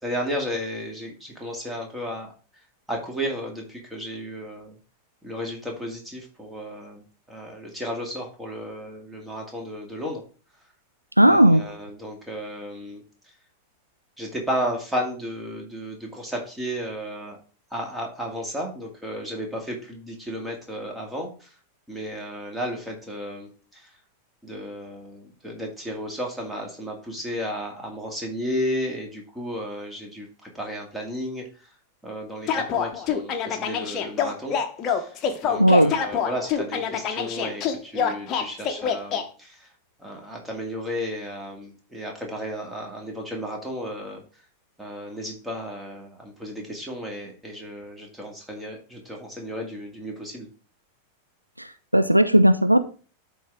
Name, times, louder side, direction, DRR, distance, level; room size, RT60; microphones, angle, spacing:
voice 1, 0.0-2.6 2.9-4.8 5.2-10.2 11.3-13.0 14.2-17.4 17.7-21.6 21.9-23.9 24.4-31.7 32.0-34.6 34.9-35.1 35.4-39.7 40.0-44.2 44.8-50.5, equal, 5° right, 2.2 m, -33 dB
voice 2, 11.2-11.6 35.5-36.0 51.6-52.8, right 1 dB, 90° right, 0.5 m, -17 dB
sound 1, 32.5-39.2, left 7 dB, 35° left, 1.0 m, -26 dB
11.5 x 4.0 x 3.6 m
figure-of-eight pair, 90°, 0 cm